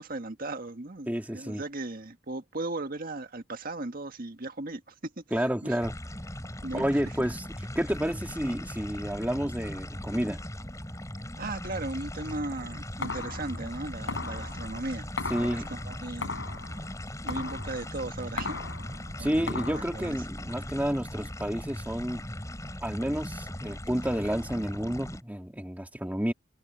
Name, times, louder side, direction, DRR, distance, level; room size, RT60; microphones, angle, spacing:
voice 1, 0.0-5.8 6.6-7.0 11.4-15.1 15.4-16.3 17.2-18.6 19.2-20.2, right 2 dB, 50° right, 1.7 m, -37 dB
voice 2, 1.1-1.6 5.3-5.9 6.7-7.4 7.8-10.4 15.3-15.7 19.2-22.2 22.8-26.3, equal, 10° right, 2.2 m, -30 dB
sound 1, 5.8-25.2, left 1 dB, 15° left, 4.0 m, -39 dB
sound 2, 12.4-19.8, left 3 dB, 90° left, 7.1 m, -38 dB
head